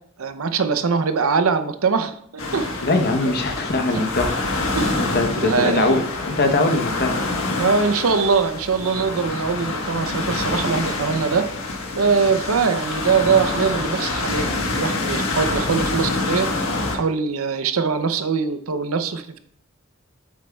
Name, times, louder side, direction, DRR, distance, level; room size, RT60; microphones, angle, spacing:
voice 1, 0.2-2.1 2.5-2.9 3.2-3.6 3.9-4.1 4.8-5.0 5.4-6.1 7.6-11.5 11.9-16.5 16.9-19.4, right 5 dB, 75° right, 10 dB, 0.6 m, -22 dB
sound 1, 2.4-17.0, left 2 dB, 75° left, 1.3 m, -26 dB
voice 2, 2.8-4.7 5.0-7.2, left 2 dB, 50° left, 5 dB, 0.9 m, -22 dB
8.3 x 7.5 x 2.3 m, 0.67 s
head